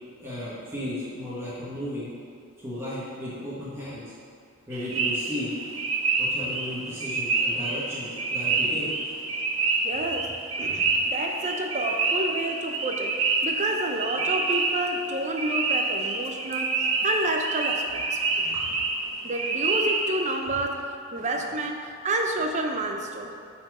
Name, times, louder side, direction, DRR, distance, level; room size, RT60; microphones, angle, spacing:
voice 1, 0.2-2.1 2.6-4.1 4.7-5.5 6.2-8.9 18.5-18.6 20.4-20.5, left 1 dB, 15° right, -10 dB, 1.6 m, -34 dB
sound 1, 4.7-20.4, right 3 dB, 85° right, 0.8 m, -27 dB
voice 2, 9.8-18.5 19.2-23.4, right 2 dB, 35° right, 3 dB, 0.6 m, -30 dB
8.6 x 4.4 x 4.9 m, 2.2 s
head